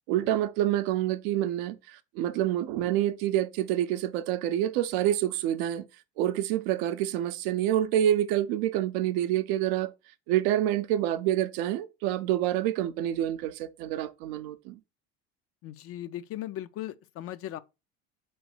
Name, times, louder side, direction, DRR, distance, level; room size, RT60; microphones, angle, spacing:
voice 1, 0.1-5.8 6.2-9.9 10.3-14.8, right 12 dB, 80° right, 0.5 m, -27 dB
voice 2, 15.6-17.6, left 13 dB, 50° left, 0.5 m, -38 dB
3.9 x 3.1 x 4.3 m
supercardioid pair, 95°, 30 cm